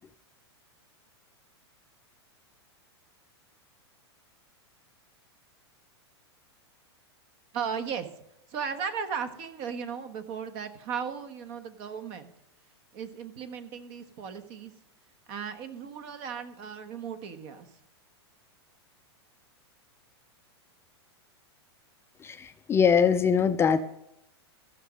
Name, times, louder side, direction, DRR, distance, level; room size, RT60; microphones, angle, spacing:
voice 1, 7.5-8.1 8.5-12.3 12.9-14.7 15.3-17.7, right 7 dB, 45° right, 9 dB, 1.3 m, -36 dB
voice 2, 22.2-23.8, left 7 dB, 15° left, 9 dB, 0.5 m, -22 dB
14.5 x 6.3 x 5.2 m, 0.84 s
hypercardioid pair, 125°, 14 cm